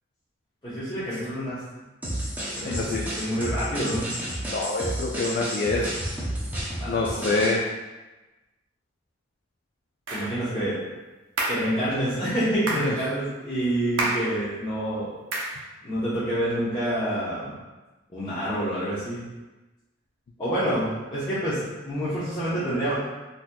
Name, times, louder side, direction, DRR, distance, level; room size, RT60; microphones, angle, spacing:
voice 1, 0.6-1.6 2.5-4.1 6.8-7.4 10.1-10.8 11.5-15.1 15.8-17.6 18.1-19.2 20.4-23.1, right 1 dB, 25° left, -13 dB, 0.8 m, -28 dB
sound 1, 2.0-7.6, right 1 dB, 10° right, 0.7 m, -31 dB
voice 2, 2.6-3.1 4.5-5.9 6.9-7.6 12.7-12.9, left 3 dB, 50° left, -2 dB, 0.4 m, -26 dB
sound 2, 10.1-10.3 11.4-11.7 12.7-12.9 14.0-14.3 15.3-15.6, right 2 dB, 80° right, 0.7 m, -27 dB
3.9 x 2.8 x 2.2 m, 1.1 s
head